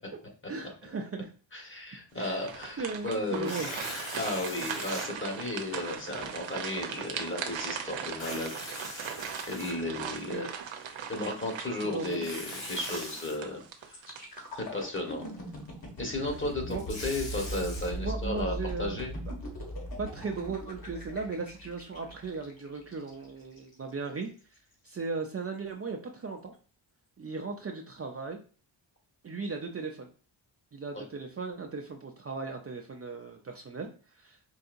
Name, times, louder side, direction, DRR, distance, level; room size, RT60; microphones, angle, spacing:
voice 1, 0.5-1.3 2.1-2.5 2.8-3.7 10.3-10.5 11.8-12.3 16.7-16.8 18.0-19.3 20.0-24.6 24.8-26.5 27.2-28.4 29.2-30.1 30.7-34.4, right 4 dB, 35° right, 2 dB, 0.5 m, -37 dB
voice 2, 1.5-3.5 4.1-8.7 9.0-10.5 11.1-12.4 12.7-14.0 14.5-15.3 16.0-18.5 18.8-19.1, left 2 dB, 25° left, 1 dB, 1.3 m, -34 dB
sound 1, 2.1-14.8 15.3-15.4 16.0-16.5, right 7 dB, 85° right, 0.7 m, -39 dB
Tearing, 3.3-5.1 5.7-5.8 8.1-10.2 12.1-13.4 16.5-17.9, left 2 dB, 80° left, 1.3 m, -41 dB
sound 2, 13.9-23.7 24.2-24.4, equal, 55° left, 1.6 m, -40 dB
4.7 x 2.7 x 2.5 m, 0.39 s
cardioid pair, 90°, 45 cm